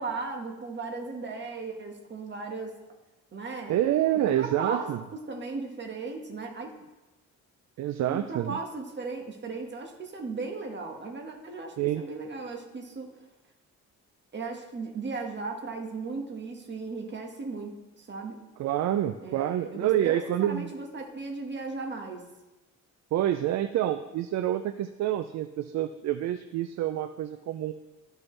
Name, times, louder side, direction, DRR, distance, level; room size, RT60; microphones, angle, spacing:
voice 1, 0.0-2.7 3.3-3.8 4.2-6.7 8.1-13.1 14.3-17.7 18.0-18.4 19.2-22.3, right 4 dB, 35° right, 2 dB, 1.6 m, -36 dB
voice 2, 3.7-5.0 7.8-8.6 11.8-12.0 18.6-20.7 23.1-27.7, right 12 dB, 65° right, 10 dB, 0.4 m, -27 dB
13.0 x 4.4 x 3.3 m, 1.0 s
cardioid pair, 90°, 30 cm